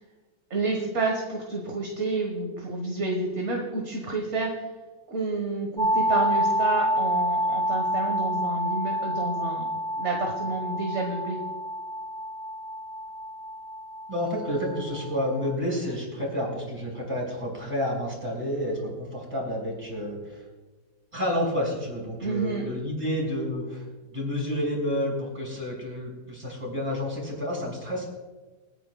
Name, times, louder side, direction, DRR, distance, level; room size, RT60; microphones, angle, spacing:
voice 1, 0.5-4.6 5.1-9.7 10.0-11.4 22.2-22.6, right 3 dB, 45° right, 1 dB, 1.7 m, -29 dB
sound 1, 5.8-15.5, equal, 35° left, 0.4 m, -28 dB
voice 2, 14.1-20.4 21.1-28.1, left 1 dB, 20° right, -3 dB, 5.4 m, -30 dB
28.5 x 10.0 x 2.3 m, 1.3 s
omnidirectional pair, 1.8 m